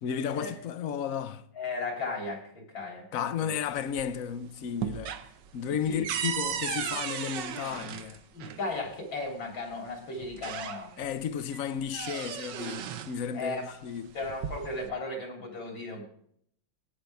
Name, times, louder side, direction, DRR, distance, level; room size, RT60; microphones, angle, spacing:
voice 1, 0.0-1.4 3.1-5.1 5.5-8.2 11.0-14.2, left 8 dB, 60° left, 0.9 m, -33 dB
voice 2, 1.5-3.1 3.3-3.5 5.9-6.1 6.9-7.0 8.3-10.9 13.3-13.7 14.1-16.0, left 3 dB, 80° left, 4.1 m, -36 dB
sound 1, 3.6-4.3 4.6-8.6 9.7-9.8 10.2-11.1 11.5-13.2 14.1-14.9, right 9 dB, 70° right, 1.4 m, -36 dB
14.5 x 9.5 x 3.5 m
omnidirectional pair, 2.1 m